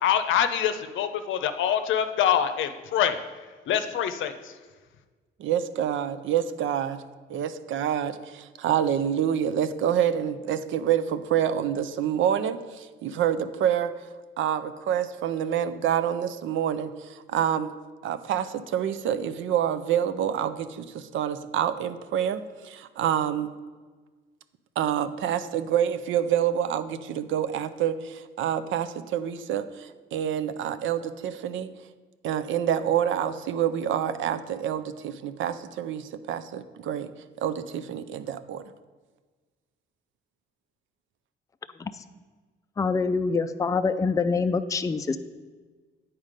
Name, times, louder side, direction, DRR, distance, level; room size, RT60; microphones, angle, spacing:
voice 1, 0.0-3.2 3.7-4.6, left 9 dB, 75° left, 9 dB, 0.6 m, -25 dB
voice 2, 5.4-7.0 7.3-13.9 14.4-17.7 18.0-23.5 24.8-31.7 32.2-37.1 37.4-38.6, right 9 dB, 75° right, 12 dB, 0.5 m, -27 dB
voice 3, 42.8-45.2, left 4 dB, 15° left, 10 dB, 0.4 m, -25 dB
9.0 x 4.2 x 5.1 m, 1.4 s
cardioid pair, 90°, 20 cm